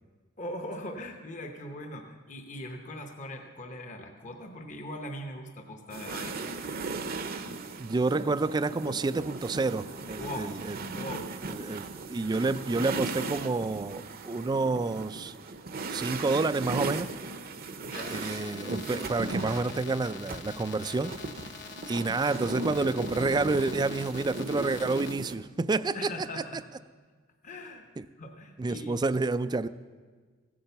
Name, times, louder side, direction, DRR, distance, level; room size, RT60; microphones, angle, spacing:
voice 1, 0.4-6.7 10.2-10.6 10.9-11.3 17.8-18.2 25.9-26.6 27.4-27.9 28.2-29.0, left 1 dB, 40° left, 4 dB, 0.9 m, -40 dB
Snowboard Sequence Mono, 5.9-20.4 21.1-25.3, right 3 dB, 50° right, 0.8 m, -37 dB
voice 2, 7.8-11.0 11.5-15.3 15.9-17.1 18.1-21.1 21.9-26.3 28.0-28.1 28.6-29.7, right 3 dB, 20° right, 14 dB, 0.3 m, -29 dB
sound 1, 17.9-25.1, left 6 dB, 65° left, 1.0 m, -45 dB
15.0 x 8.7 x 6.8 m, 1.5 s
head